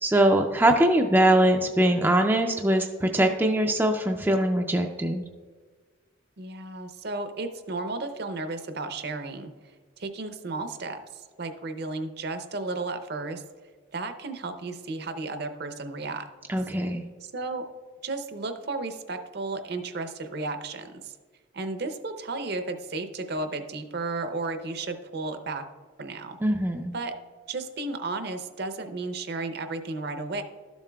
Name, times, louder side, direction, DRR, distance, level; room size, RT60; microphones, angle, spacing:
voice 1, 0.0-5.2 16.5-17.0 26.4-26.9, right 1 dB, 10° right, 3 dB, 0.3 m, -22 dB
voice 2, 6.4-13.4 13.9-16.3 17.2-17.6 18.0-21.1 21.5-25.7 26.0-26.4 26.9-27.1 27.5-30.4, right 3 dB, 55° right, 8 dB, 0.6 m, -33 dB
12.5 x 7.2 x 2.2 m, 1.5 s
head